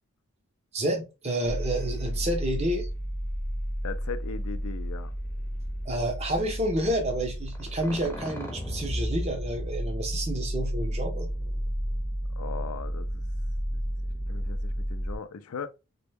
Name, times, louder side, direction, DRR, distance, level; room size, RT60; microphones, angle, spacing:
voice 1, 0.7-2.9 5.9-11.3, right 1 dB, 30° right, 0.6 m, -29 dB
sound 1, 1.4-15.2, equal, 10° left, 0.7 m, -32 dB
voice 2, 3.8-5.1 12.4-13.2 13.7-13.8 14.3-15.7, left 5 dB, 75° left, 0.4 m, -38 dB
3.1 x 2.2 x 3.2 m
head